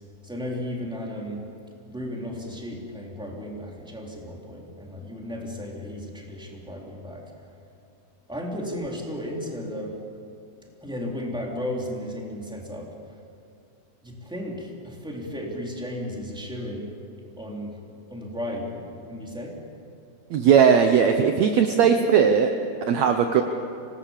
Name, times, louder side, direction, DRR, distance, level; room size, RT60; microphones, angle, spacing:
voice 1, 0.2-1.4 1.9-7.2 8.3-10.0 10.8-12.9 14.0-16.9 17.4-17.8 18.1-19.6, left 1 dB, ahead, -2 dB, 2.9 m, -34 dB
voice 2, 20.3-22.5 22.9-23.4, right 7 dB, 75° right, 6 dB, 1.6 m, -18 dB
26.0 x 19.0 x 7.4 m, 2.6 s
omnidirectional pair, 4.3 m